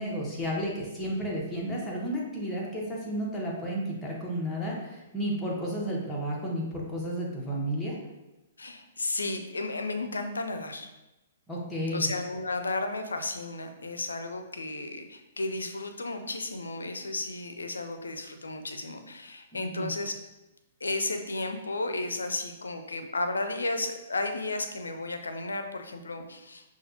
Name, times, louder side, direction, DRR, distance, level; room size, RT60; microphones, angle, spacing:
voice 1, 0.0-8.0 11.5-12.1 19.6-19.9, equal, 10° left, -4 dB, 1.0 m, -32 dB
voice 2, 8.6-10.9 11.9-20.1 20.8-26.6, left 2 dB, 90° left, 7 dB, 0.4 m, -33 dB
5.5 x 2.4 x 2.7 m, 0.99 s
hypercardioid pair, 125°, 0 cm